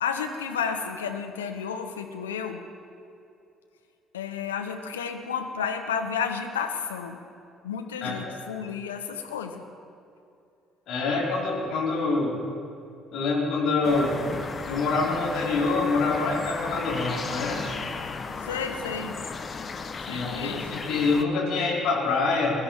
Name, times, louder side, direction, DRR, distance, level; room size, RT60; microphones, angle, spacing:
voice 1, 0.0-2.6 4.1-7.2 7.6-9.6 18.4-19.2 20.0-20.8, left 6 dB, 80° left, 5 dB, 1.0 m, -32 dB
voice 2, 8.0-8.3 10.9-12.4 13.1-14.2 14.7-17.7 20.1-22.6, left 3 dB, 55° left, -3 dB, 3.4 m, -26 dB
sound 1, 13.8-21.2, left 4 dB, 35° left, 1.0 m, -35 dB
21.5 x 12.0 x 4.4 m, 2.6 s
figure-of-eight pair, 50°, 0 cm